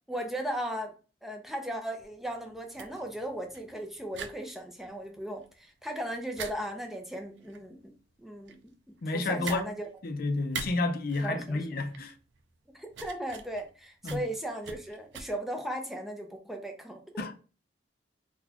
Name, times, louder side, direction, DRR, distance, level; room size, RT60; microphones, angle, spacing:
voice 1, 0.1-0.9 1.2-8.6 8.9-9.9 11.2-11.6 12.7-17.0, right 1 dB, ahead, 0.6 m, -37 dB
sound 1, 2.0-15.2, right 5 dB, 85° right, 0.5 m, -45 dB
voice 2, 9.0-9.7 10.0-12.1 14.0-14.2 17.2-17.4, left 2 dB, 55° left, 0.5 m, -30 dB
4.0 x 2.3 x 2.8 m
head